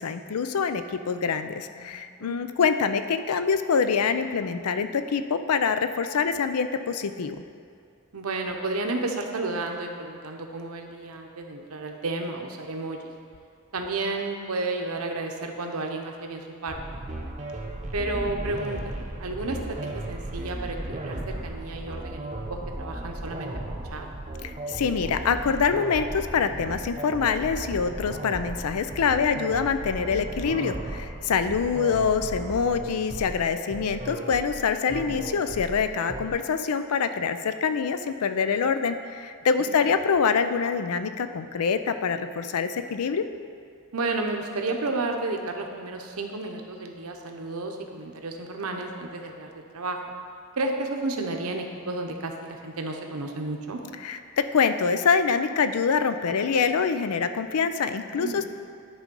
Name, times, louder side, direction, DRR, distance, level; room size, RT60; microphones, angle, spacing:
voice 1, 0.0-7.4 24.4-43.2 54.0-54.2 54.5-58.4, left 5 dB, 85° left, 10 dB, 0.5 m, -25 dB
voice 2, 1.8-2.3 8.1-13.1 13.7-16.8 17.9-18.9 19.2-19.6 20.1-23.5 23.8-24.1 31.4-31.6 35.1-35.2 39.6-39.7 43.9-50.0 50.6-53.8 58.1-58.4, right 2 dB, 80° right, 3 dB, 0.8 m, -32 dB
sound 1, 16.7-36.3, right 1 dB, 30° right, 0.7 m, -36 dB
11.0 x 3.8 x 5.3 m, 2.4 s
head